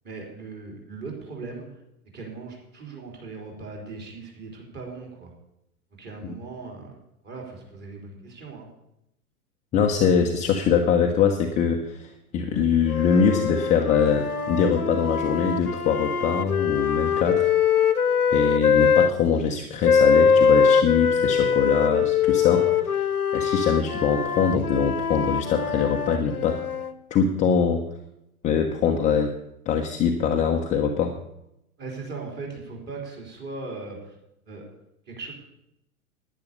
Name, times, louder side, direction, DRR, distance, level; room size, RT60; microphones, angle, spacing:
voice 1, 0.0-1.8 2.1-5.3 5.9-7.0 7.2-8.7 31.8-34.2 34.5-34.6 35.1-35.3, right 3 dB, 20° right, 0 dB, 3.9 m, -38 dB
voice 2, 9.7-17.5 18.3-23.1 23.3-26.6 27.1-27.8 28.4-29.3 29.7-31.1, left 6 dB, 15° left, 3 dB, 0.8 m, -23 dB
sound 1, 12.9-19.1 19.8-26.9, left 6 dB, 80° left, 1.1 m, -22 dB
10.5 x 10.0 x 6.7 m, 0.83 s
figure-of-eight pair, 105°, 44 cm